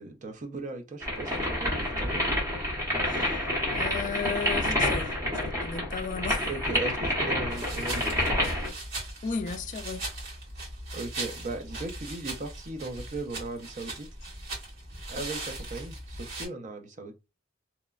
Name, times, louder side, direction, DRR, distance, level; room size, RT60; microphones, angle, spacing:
voice 1, 0.0-2.2 6.4-8.2 10.9-14.1 15.1-17.1, right 2 dB, 40° right, 0.5 m, -37 dB
sound 1, 1.0-8.7, left 1 dB, 15° right, 1.0 m, -28 dB
voice 2, 3.0-3.4 3.7-5.2 5.5-6.5 9.2-10.1, left 5 dB, 40° left, 0.3 m, -34 dB
sound 2, 7.5-16.5, right 2 dB, 65° right, 1.5 m, -39 dB
2.9 x 2.1 x 2.3 m
head